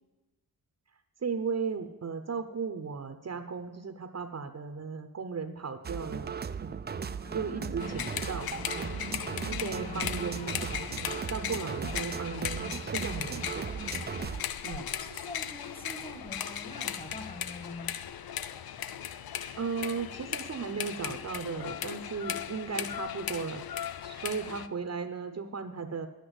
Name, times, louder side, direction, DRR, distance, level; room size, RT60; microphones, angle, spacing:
voice 1, 1.2-6.8 7.3-8.9 9.5-13.7 14.6-14.9 19.5-26.1, right 5 dB, 45° right, 9 dB, 0.8 m, -36 dB
sound 1, 5.8-14.4, right 6 dB, 30° right, 0.4 m, -37 dB
voice 2, 7.2-8.1 9.4-10.3 14.2-18.0, left 1 dB, 25° left, 6 dB, 1.6 m, -45 dB
sound 2, 7.8-24.7, left 9 dB, 75° left, 0.6 m, -37 dB
10.0 x 8.2 x 7.8 m, 1.1 s
wide cardioid pair, 95°, 37 cm